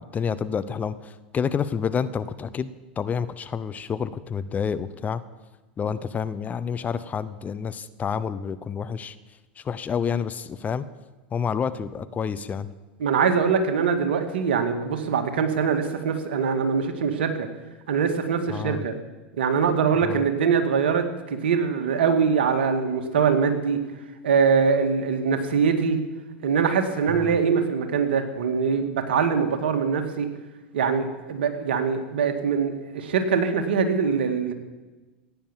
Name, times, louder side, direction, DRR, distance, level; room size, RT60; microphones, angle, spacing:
voice 1, 0.0-2.7 3.0-5.2 5.8-9.2 9.6-10.9 11.3-12.7 18.5-18.9 20.0-20.3 27.1-27.4, left 7 dB, 25° left, 14 dB, 0.8 m, -29 dB
voice 2, 13.0-17.5 17.9-18.9 19.4-23.8 24.2-26.0 26.4-30.3 30.7-34.5, right 6 dB, 75° right, 6 dB, 2.1 m, -23 dB
16.0 x 9.6 x 7.4 m, 1.2 s
hypercardioid pair, 90°, 6 cm